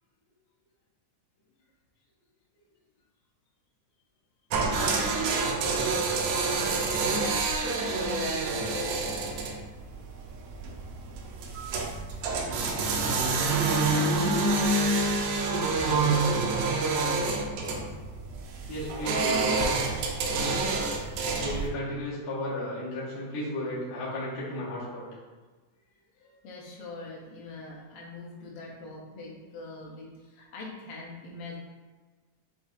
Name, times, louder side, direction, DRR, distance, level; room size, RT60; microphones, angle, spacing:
sound 1, 4.5-21.7, right 3 dB, 90° right, 1.5 m, -27 dB
voice 1, 15.8-16.2 18.7-19.5 21.4-25.0, left 1 dB, 70° left, -8 dB, 0.9 m, -34 dB
voice 2, 17.3-17.9 19.2-19.5 26.1-31.6, left 3 dB, 85° left, -1 dB, 2.4 m, -44 dB
6.4 x 2.7 x 2.4 m, 1.3 s
omnidirectional pair, 3.7 m